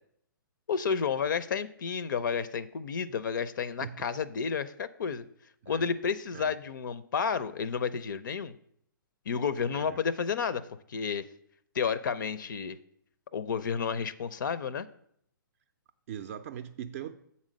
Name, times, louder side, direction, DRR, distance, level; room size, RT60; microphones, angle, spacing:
voice 1, 0.7-5.2 5.7-8.5 9.3-10.6 10.9-11.3 11.7-12.8 13.3-14.9, left 6 dB, 65° left, 0.5 m, -31 dB
voice 2, 16.1-17.1, right 9 dB, 40° right, 0.4 m, -40 dB
7.2 x 4.2 x 6.3 m
hypercardioid pair, 130°, 11 cm